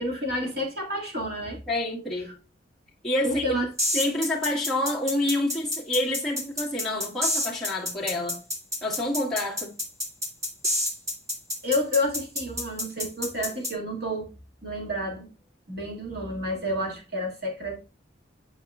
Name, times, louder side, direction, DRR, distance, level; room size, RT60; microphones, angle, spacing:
voice 1, 0.0-1.6 3.2-3.7 11.6-14.3 14.6-15.3 15.7-17.9, left 1 dB, 55° right, 2.2 m, -30 dB
voice 2, 1.7-2.4 3.0-3.6 3.9-8.4 8.8-9.7, left 1 dB, ahead, 1.8 m, -28 dB
sound 1, 3.8-13.7, left 1 dB, 15° right, 1.5 m, -28 dB
8.6 x 4.8 x 2.4 m
head